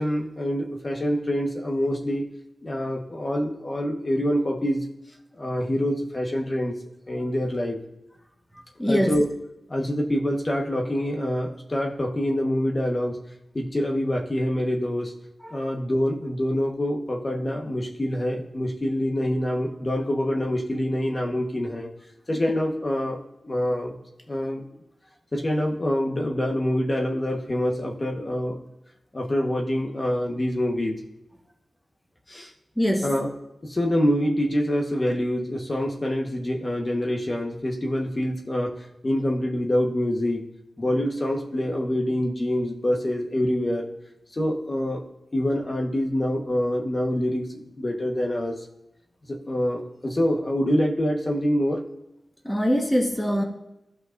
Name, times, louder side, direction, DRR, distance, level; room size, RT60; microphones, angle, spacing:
voice 1, 0.0-2.3 2.6-4.8 5.4-6.8 7.1-7.8 8.9-9.3 9.7-13.2 13.5-15.1 15.5-21.9 22.3-23.2 23.4-23.9 24.3-24.6 25.3-28.6 29.1-31.0 32.3-32.5 33.0-33.3 33.6-38.7 39.0-40.4 40.8-43.9 44.3-45.0 45.3-48.6 49.3-51.8, equal, 35° left, 0 dB, 1.3 m, -25 dB
voice 2, 8.8-9.1 15.4-15.6 32.8-33.1 52.4-53.4, equal, 5° left, 1 dB, 1.4 m, -23 dB
15.0 x 5.8 x 2.6 m, 0.89 s
wide cardioid pair, 75°, 0 cm